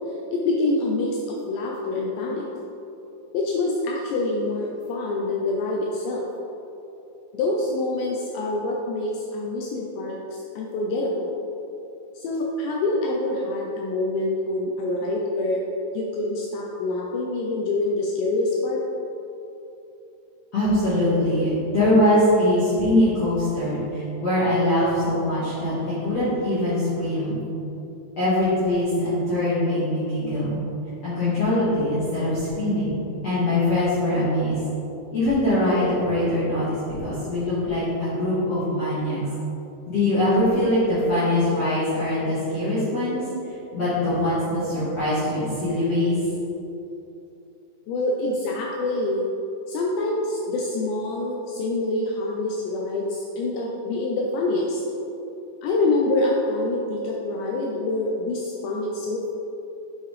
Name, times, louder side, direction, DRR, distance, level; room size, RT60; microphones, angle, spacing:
voice 1, 0.3-2.5 3.3-6.3 7.3-11.3 12.1-15.6 15.9-18.8 47.9-49.3 49.7-54.8 55.6-59.3, left 2 dB, 80° left, -2 dB, 2.7 m, -26 dB
voice 2, 20.5-27.4 28.2-30.6 31.0-33.0 33.2-34.6 35.1-39.2 39.9-43.2 43.7-46.1, left 1 dB, 60° left, -13 dB, 1.7 m, -22 dB
8.1 x 6.7 x 3.2 m, 2.9 s
omnidirectional pair, 5.5 m